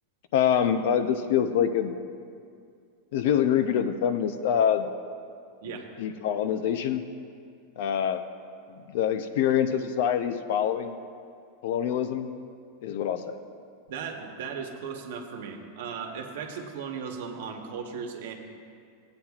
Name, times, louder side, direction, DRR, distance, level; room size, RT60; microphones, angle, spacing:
voice 1, 0.3-2.0 3.1-4.9 6.0-7.1 7.8-8.2 8.7-11.0 11.6-12.3 12.8-13.4, left 9 dB, 60° left, 9 dB, 0.5 m, -25 dB
voice 2, 13.9-18.3, right 6 dB, 70° right, 3 dB, 1.1 m, -36 dB
16.5 x 8.7 x 2.4 m, 2.3 s
supercardioid pair, 165°, 0 cm